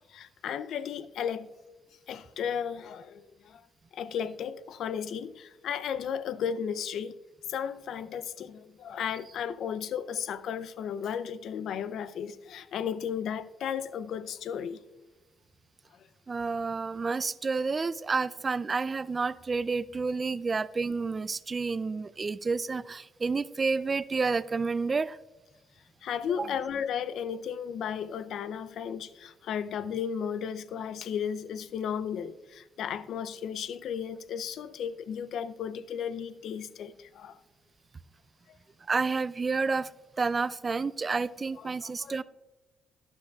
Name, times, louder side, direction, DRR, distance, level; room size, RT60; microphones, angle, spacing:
voice 1, 0.1-1.5 2.1-3.6 3.9-7.2 7.5-14.8 26.0-37.4 41.6-42.2, left 8 dB, 70° left, 0.4 m, -34 dB
voice 2, 16.3-25.2 26.4-26.5 38.9-39.9 40.2-42.2, right 4 dB, 30° right, 0.3 m, -30 dB
12.0 x 11.0 x 2.3 m
cardioid pair, 90°, 0 cm